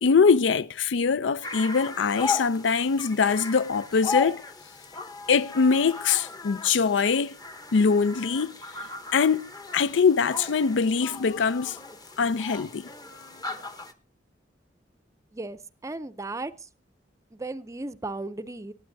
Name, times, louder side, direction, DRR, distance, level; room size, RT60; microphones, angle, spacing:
voice 1, 0.0-4.4 5.3-7.3 7.7-8.6 9.1-11.8 12.2-12.9, left 5 dB, 85° left, 0.5 m, -23 dB
sound 1, 1.4-13.9, left 4 dB, 20° left, 0.9 m, -36 dB
voice 2, 15.3-16.5 17.3-18.7, right 2 dB, 15° right, 0.5 m, -35 dB
24.5 x 9.5 x 2.7 m
head